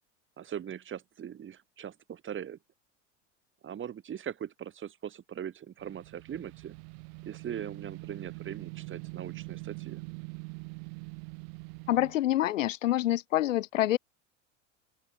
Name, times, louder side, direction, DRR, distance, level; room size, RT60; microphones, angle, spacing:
voice 1, 0.4-2.6 3.6-6.8 7.2-10.0, right 9 dB, 30° right, 3.1 m, -40 dB
sound 1, 5.8-12.1, right 37 dB, 65° right, 7.2 m, -43 dB
voice 2, 11.9-14.0, left 13 dB, 90° left, 1.2 m, -26 dB
open air
hypercardioid pair, 100°, 37 cm